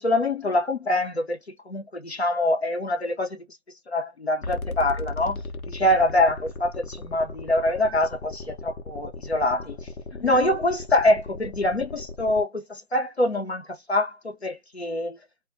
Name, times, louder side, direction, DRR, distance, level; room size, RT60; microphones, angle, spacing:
voice 1, 0.0-1.4 1.7-3.3 3.9-5.4 5.7-9.8 10.1-15.2, left 1 dB, 50° left, 0.7 m, -24 dB
sound 1, 4.4-12.4, left 2 dB, 80° left, 0.9 m, -37 dB
2.3 x 2.2 x 2.5 m
figure-of-eight pair, 175°, 43 cm